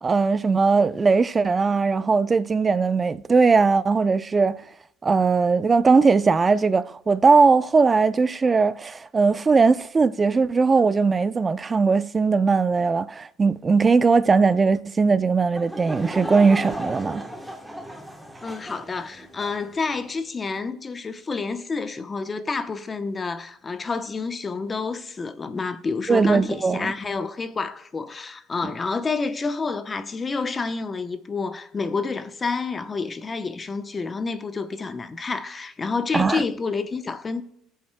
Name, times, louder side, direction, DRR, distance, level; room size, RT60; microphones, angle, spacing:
voice 1, 0.0-4.6 5.0-17.2 26.1-26.9 36.1-36.4, right 4 dB, 25° right, 0.5 m, -19 dB
Laughter / Crowd, 15.5-19.7, right 1 dB, 5° right, 1.1 m, -35 dB
voice 2, 18.4-37.4, left 4 dB, 25° left, 0.7 m, -29 dB
18.5 x 7.4 x 2.2 m
supercardioid pair, 105°, 0 cm